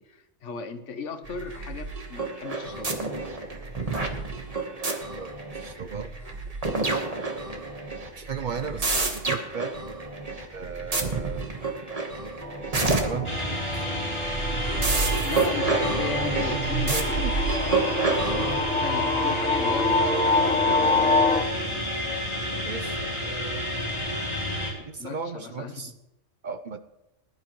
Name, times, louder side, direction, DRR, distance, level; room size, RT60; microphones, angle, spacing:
voice 1, 0.0-3.1 15.2-18.0 18.3-21.5 24.9-25.9, left 5 dB, 75° left, 9 dB, 1.2 m, -37 dB
sound 1, 1.2-18.6, right 3 dB, 30° right, 1.3 m, -29 dB
voice 2, 5.2-6.1 8.2-9.8 10.5-11.5 13.0-13.6 16.5-17.5 19.8-20.9 22.7-23.6 24.8-25.9 26.4-26.8, right 6 dB, 55° right, 10 dB, 0.6 m, -35 dB
sound 2, 12.4-21.4, left 3 dB, 5° left, 1.0 m, -27 dB
sound 3, 13.2-24.7, equal, 25° left, 3.1 m, -30 dB
20.0 x 11.0 x 3.1 m, 0.93 s
omnidirectional pair, 1.2 m